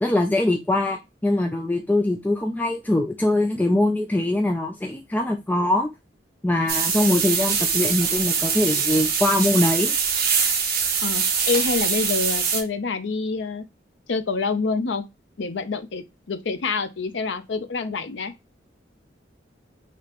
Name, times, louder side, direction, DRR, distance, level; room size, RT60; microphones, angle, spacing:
voice 1, 0.0-5.9 6.4-10.0, left 1 dB, 10° left, 0.4 m, -22 dB
sound 1, 6.7-12.6, right 6 dB, 55° right, 1.1 m, -23 dB
voice 2, 11.0-13.6 14.1-15.0 15.4-18.3, left 4 dB, 80° left, 0.6 m, -27 dB
5.0 x 2.9 x 2.9 m
head